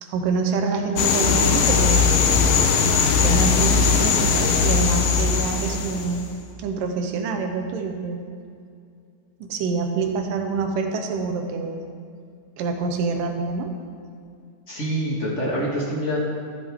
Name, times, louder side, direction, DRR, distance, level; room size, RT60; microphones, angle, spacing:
voice 1, 0.0-2.1 3.1-6.3 6.6-8.3 9.4-11.8 12.6-13.7, right 4 dB, 75° right, 4 dB, 2.5 m, -26 dB
sound 1, 1.0-6.2, left 5 dB, 90° left, 2.7 m, -19 dB
voice 2, 14.7-16.2, equal, 40° left, -4 dB, 1.0 m, -25 dB
14.0 x 11.0 x 3.6 m, 2.4 s
omnidirectional pair, 4.0 m